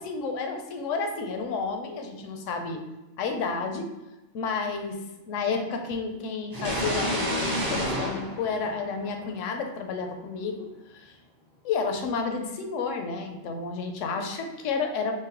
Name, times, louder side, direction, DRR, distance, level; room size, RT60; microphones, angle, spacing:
voice 1, 0.0-2.8 3.2-3.9 4.3-11.2 11.6-15.1, left 4 dB, 75° left, 5 dB, 0.9 m, -31 dB
sound 1, 6.5-9.3, equal, 30° right, 0.4 m, -29 dB
3.7 x 3.1 x 2.9 m, 1.1 s
omnidirectional pair, 1.3 m